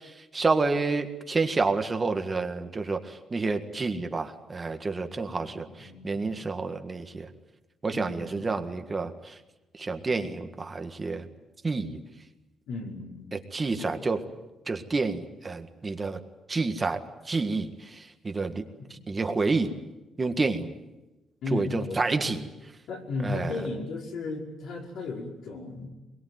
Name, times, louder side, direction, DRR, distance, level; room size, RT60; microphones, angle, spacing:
voice 1, 0.3-7.3 7.8-9.4 9.8-11.2 11.6-12.0 13.3-14.2 14.7-16.2 16.5-17.0 17.3-18.6 19.1-19.7 20.2-20.7 21.5-22.4 23.2-23.5, right 3 dB, 25° right, 6 dB, 1.7 m, -29 dB
voice 2, 5.3-6.5 7.9-8.6 12.7-13.4 13.8-14.1 18.8-19.1 21.4-22.4 22.9-25.9, left 3 dB, 75° left, 0 dB, 5.3 m, -36 dB
23.0 x 22.0 x 9.4 m, 1.1 s
cardioid pair, 140°, 0 cm